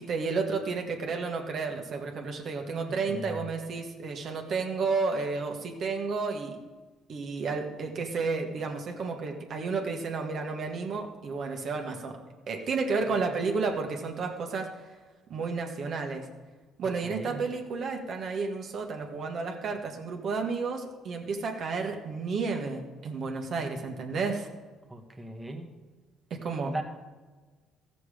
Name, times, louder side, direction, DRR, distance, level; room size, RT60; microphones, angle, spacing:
voice 1, 0.0-6.6 7.1-12.2 12.5-14.7 15.3-16.3 16.8-24.5 26.3-26.8, right 4 dB, 55° right, 2 dB, 1.5 m, -32 dB
voice 2, 2.5-3.5 17.0-17.5 24.9-25.7 26.6-26.8, right 1 dB, 10° right, 2 dB, 1.3 m, -38 dB
14.0 x 6.9 x 5.0 m, 1.3 s
supercardioid pair, 75°, 0 cm